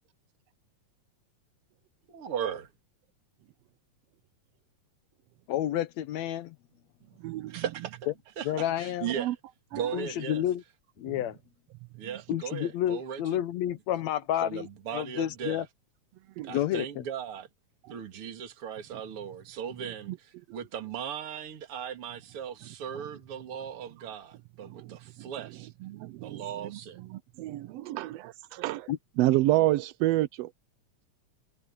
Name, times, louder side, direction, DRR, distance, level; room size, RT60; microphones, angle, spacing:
voice 1, 2.1-2.7 7.5-8.0 8.4-8.5 8.8-9.4 9.7-10.4 12.0-13.4 14.4-15.6 16.4-17.5 17.9-25.7 26.2-27.0, right 8 dB, 50° right, 2.9 m, -37 dB
voice 2, 5.5-6.6 8.5-9.1 9.9-10.6 11.0-11.4 12.3-15.7 16.5-17.0 28.9-29.0, left 11 dB, 75° left, 1.9 m, -30 dB
voice 3, 7.2-7.6 9.2-9.3 9.7-9.8 16.4-16.5 17.9-18.0 24.6-25.3 25.8-26.8 27.1-28.9 29.2-30.5, right 16 dB, 85° right, 1.4 m, -29 dB
omnidirectional pair, 3.5 m